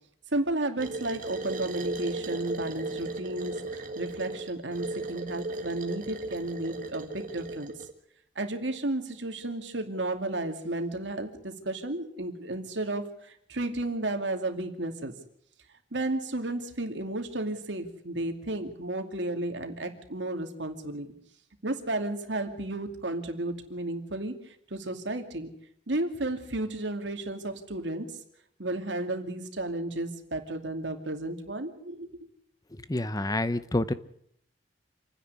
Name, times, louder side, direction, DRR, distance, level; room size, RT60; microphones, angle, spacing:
voice 1, 0.3-7.7 8.4-15.1 15.9-21.1 21.6-25.5 25.9-28.2 28.6-32.1, right 2 dB, 85° right, 6 dB, 2.5 m, -33 dB
sound 1, 0.8-7.9, right 2 dB, 45° right, 1.9 m, -36 dB
voice 2, 32.7-33.9, left 1 dB, 20° left, 14 dB, 0.8 m, -28 dB
27.0 x 10.0 x 9.7 m, 0.71 s
head